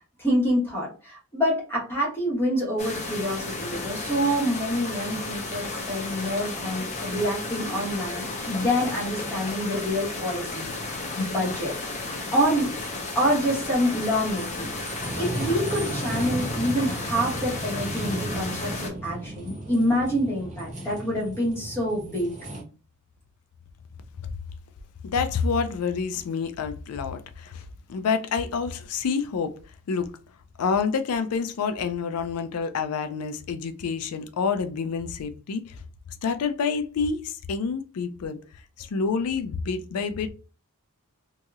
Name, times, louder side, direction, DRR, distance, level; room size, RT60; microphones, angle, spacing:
voice 1, 0.2-12.7 13.1-14.7 15.1-22.3, equal, 10° left, 1.2 m, -27 dB
sound 1, 2.8-18.9, left 3 dB, 35° left, 0.8 m, -33 dB
sound 2, 13.2-22.6, right 1 dB, 35° right, 0.8 m, -35 dB
voice 2, 25.0-29.6 29.9-30.1 30.6-35.8 36.2-38.4 38.8-40.3, left 5 dB, 70° left, 0.4 m, -28 dB
2.9 x 2.7 x 2.4 m
head